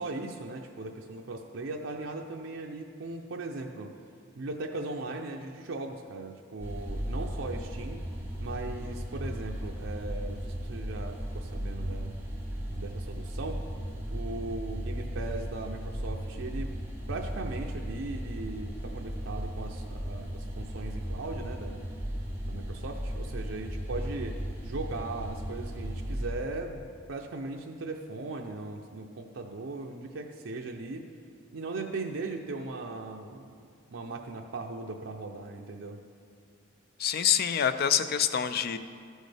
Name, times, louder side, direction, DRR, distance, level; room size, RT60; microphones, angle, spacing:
voice 1, 0.0-3.9 4.4-8.0 8.4-12.2 12.7-13.6 14.1-16.8 17.1-21.8 22.5-24.4 24.6-26.8 27.1-31.1 31.5-36.0, right 3 dB, 75° right, 1 dB, 0.6 m, -38 dB
sound 1, 6.6-26.3, equal, 10° right, 1.3 m, -36 dB
voice 2, 37.0-38.8, left 8 dB, 50° left, 11 dB, 0.4 m, -26 dB
13.5 x 6.3 x 3.4 m, 2.3 s
head